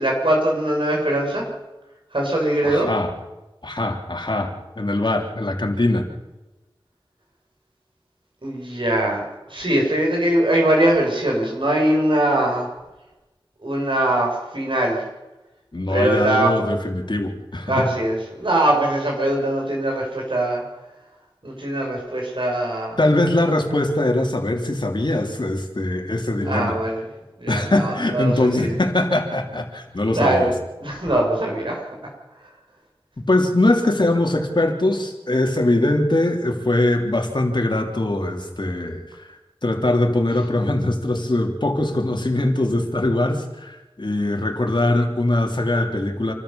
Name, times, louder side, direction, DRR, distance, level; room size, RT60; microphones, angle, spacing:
voice 1, 0.0-1.4 2.1-2.9 8.4-9.2 9.5-12.7 13.6-15.0 15.9-16.5 17.7-20.6 21.4-23.0 26.5-27.0 27.4-28.7 30.1-30.5 30.8-31.9, right 1 dB, 65° right, -1 dB, 7.1 m, -21 dB
voice 2, 2.6-3.1 3.6-6.1 15.7-17.9 23.0-26.8 27.5-30.5 33.3-39.0 39.6-46.3, left 1 dB, 55° left, 2 dB, 3.4 m, -21 dB
27.5 x 13.0 x 7.2 m, 1.1 s
wide cardioid pair, 45°, 9 cm